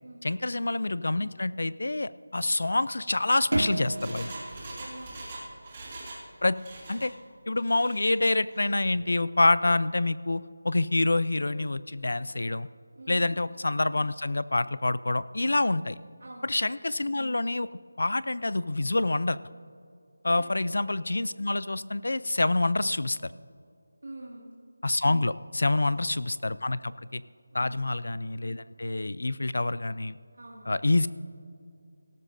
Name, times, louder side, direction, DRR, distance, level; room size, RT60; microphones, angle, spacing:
voice 1, 0.2-4.3 6.4-6.6 6.9-7.1 7.5-12.7 13.1-16.0 16.4-17.7 18.0-19.4 20.2-23.3 24.8-27.2 27.5-30.2 30.7-31.1, left 2 dB, 60° left, 17 dB, 0.4 m, -27 dB
Engine, 3.3-6.3 6.5-7.1 7.6-8.1 8.5-8.6, right 2 dB, 15° right, 1.2 m, -43 dB
sound 1, 3.5-6.1, right 2 dB, 75° right, 0.3 m, -33 dB
voice 2, 4.8-5.2 12.9-13.3 16.2-16.5 20.2-20.4 24.0-24.6 25.6-26.0 27.5-27.9 30.3-31.0, right 2 dB, 55° right, -4 dB, 1.9 m, -46 dB
17.5 x 13.5 x 2.6 m, 2.4 s
figure-of-eight pair, 180°, 0 cm